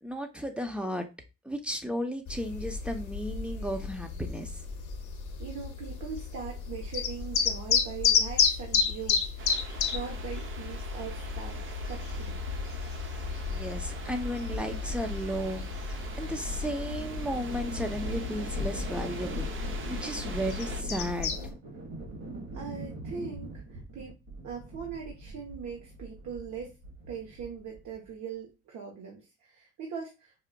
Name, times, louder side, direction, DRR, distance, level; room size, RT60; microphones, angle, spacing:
voice 1, 0.0-1.0 1.4-4.6 13.2-21.6, equal, 5° right, 0.6 m, -34 dB
sound 1, 2.3-21.5, left 6 dB, 75° left, 0.7 m, -32 dB
voice 2, 5.4-12.4 22.5-24.2 24.4-26.8 27.1-30.3, right 6 dB, 70° right, 1.0 m, -41 dB
sound 2, 9.4-20.8, right 5 dB, 40° right, 0.6 m, -45 dB
sound 3, 11.1-28.1, right 2 dB, 90° right, 1.7 m, -43 dB
4.8 x 2.4 x 2.2 m
cardioid pair, 90°, 30 cm